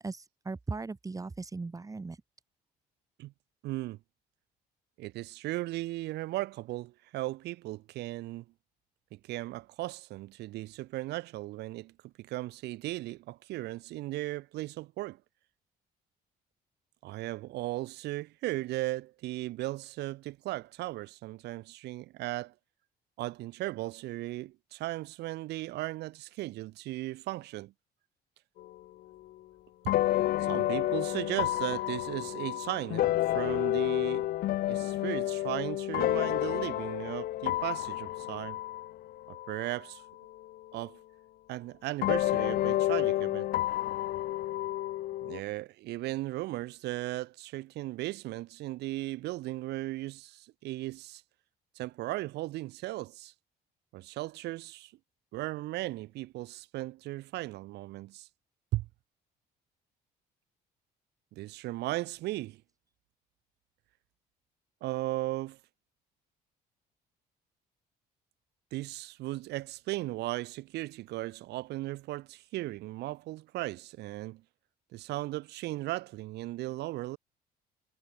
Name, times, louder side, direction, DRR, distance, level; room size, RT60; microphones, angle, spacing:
voice 1, 0.0-2.2, right 3 dB, 20° right, 6.1 m, -38 dB
voice 2, 3.6-4.0 5.0-8.4 9.1-15.2 17.0-22.5 23.2-27.7 30.4-34.3 34.7-38.6 39.3-40.0 40.7-41.0 41.5-43.5 45.2-51.2 51.8-53.3 53.9-54.9 55.3-58.3 58.7-58.9 61.3-62.6 64.8-65.6 68.7-74.4 74.9-77.2, right 17 dB, 80° right, 3.7 m, -36 dB
sound 1, 28.6-28.7 29.9-39.7 40.4-40.5 42.0-45.4, left 14 dB, 65° left, 0.6 m, -30 dB
cardioid pair, 110°, 17 cm